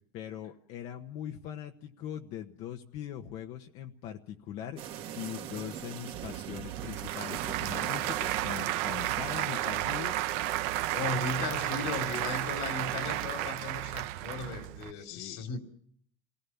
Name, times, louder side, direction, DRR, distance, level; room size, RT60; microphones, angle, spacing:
voice 1, 0.1-4.8 5.2-10.1 14.9-15.4, left 10 dB, 55° left, 1.3 m, -41 dB
sound 1, 4.8-13.6, right 10 dB, 50° right, 2.2 m, -42 dB
Applause / Crowd, 6.1-14.9, right 15 dB, 65° right, 1.1 m, -33 dB
voice 2, 10.9-15.6, left 3 dB, 75° left, 3.2 m, -36 dB
27.5 x 18.5 x 7.2 m
cardioid pair, 145°, 12 cm